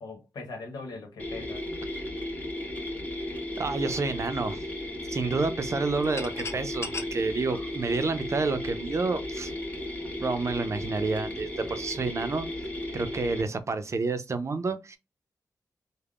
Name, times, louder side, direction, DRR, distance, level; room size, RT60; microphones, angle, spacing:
voice 1, 0.0-1.7, left 3 dB, 85° left, 1.0 m, -40 dB
sound 1, 1.2-13.4, left 1 dB, 25° left, 1.2 m, -35 dB
voice 2, 3.6-4.6 5.1-9.5 10.2-12.5 12.9-15.0, right 3 dB, 45° right, 0.5 m, -29 dB
sound 2, 5.9-8.7, left 3 dB, 45° left, 0.6 m, -39 dB
3.5 x 2.1 x 2.3 m
cardioid pair, 60°, 7 cm